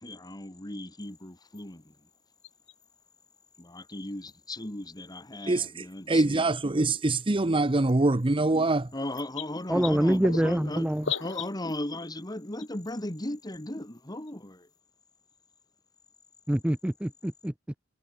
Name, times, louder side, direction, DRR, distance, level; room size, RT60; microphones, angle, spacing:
voice 1, 0.0-1.9 3.6-6.6 8.9-10.9 11.2-14.7, left 1 dB, 20° left, 2.0 m, -37 dB
sound 1, 1.5-1.6 2.4-2.9 4.3-4.4 5.8-5.9 6.9-7.1 7.9-8.0 8.2-8.3 8.7-8.8 9.1-11.8 12.6-12.9 13.9-14.0 14.3-14.4, left 6 dB, 75° left, 7.6 m, -36 dB
voice 2, 5.5-8.9, right 2 dB, 25° right, 0.8 m, -24 dB
voice 3, 9.7-11.0 16.5-17.5, right 1 dB, 5° right, 0.5 m, -25 dB
head